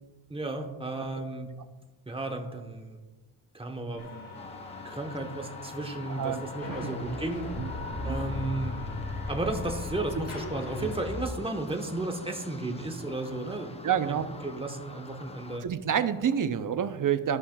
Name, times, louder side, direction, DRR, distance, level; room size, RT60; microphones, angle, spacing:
voice 1, 0.3-1.5 2.1-3.0 3.5-4.1 4.8-7.5 8.0-8.7 9.3-15.6, right 2 dB, 10° right, 3 dB, 1.0 m, -34 dB
sound 1, 4.0-11.2, left 2 dB, 80° left, 1.4 m, -37 dB
sound 2, 4.3-15.6, left 2 dB, 15° left, 0.4 m, -47 dB
voice 2, 6.1-6.4 6.7-6.9 7.6-7.7 8.0-8.2 10.2-10.3 13.8-14.3 15.6-17.4, right 8 dB, 40° right, 11 dB, 0.6 m, -28 dB
14.0 x 5.6 x 2.3 m, 1.2 s
cardioid pair, 85°, 49 cm